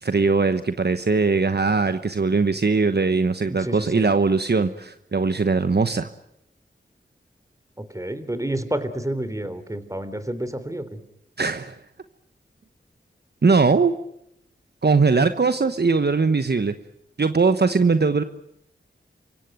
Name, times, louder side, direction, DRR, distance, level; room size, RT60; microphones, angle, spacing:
voice 1, 0.0-6.1 11.4-11.8 13.4-13.9 14.8-16.7 17.2-18.2, right 4 dB, 55° right, 10 dB, 1.1 m, -20 dB
voice 2, 3.5-4.1 7.8-11.0, right 1 dB, 15° right, 12 dB, 3.6 m, -29 dB
28.5 x 16.5 x 9.3 m, 0.80 s
cardioid pair, 40°, 20 cm